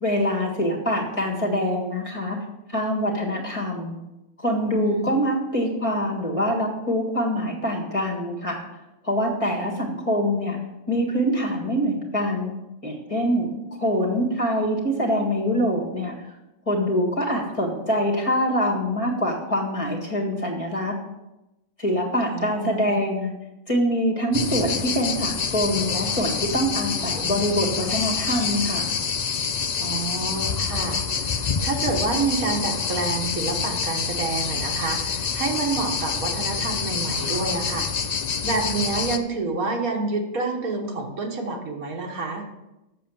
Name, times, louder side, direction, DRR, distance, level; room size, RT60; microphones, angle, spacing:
voice 1, 0.0-2.4 2.7-4.0 4.4-8.6 9.0-10.6 10.9-12.5 12.8-16.1 16.7-20.9 21.8-23.3 23.7-28.9, equal, 25° left, -2 dB, 1.7 m, -24 dB
voice 2, 4.8-5.2 17.3-17.4 22.3-23.0 29.8-31.0 31.6-37.9 38.4-42.4, right 3 dB, 80° right, 2 dB, 1.8 m, -28 dB
sound 1, 24.3-39.2, left 6 dB, 55° left, 0.4 m, -27 dB
7.5 x 6.8 x 7.0 m, 0.96 s
omnidirectional pair, 1.5 m